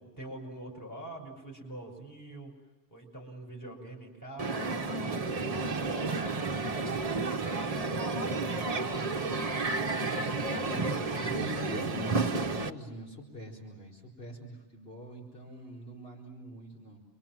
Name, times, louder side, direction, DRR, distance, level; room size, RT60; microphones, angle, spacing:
voice 1, 0.0-2.5 2.9-4.9 5.5-8.5, right 2 dB, 15° left, 0 dB, 6.0 m, -45 dB
Crowd, 4.4-12.7, right 3 dB, 35° right, 1.0 m, -31 dB
voice 2, 9.1-10.2 10.5-17.0, left 1 dB, 55° left, -3 dB, 4.7 m, -45 dB
29.0 x 24.0 x 7.5 m, 1.2 s
omnidirectional pair, 1.2 m